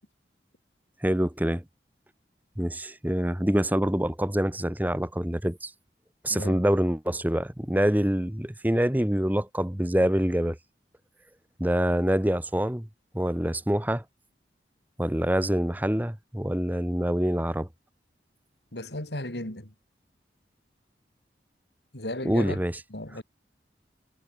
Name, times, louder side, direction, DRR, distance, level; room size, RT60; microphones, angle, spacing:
voice 1, 1.0-1.6 2.6-5.7 6.2-10.6 11.6-12.9 13.1-14.0 15.0-17.7 22.2-22.7, equal, 10° right, 1.1 m, -25 dB
voice 2, 6.3-6.6 18.7-19.7 21.9-22.6 22.9-23.2, left 1 dB, 70° left, 5.4 m, -35 dB
head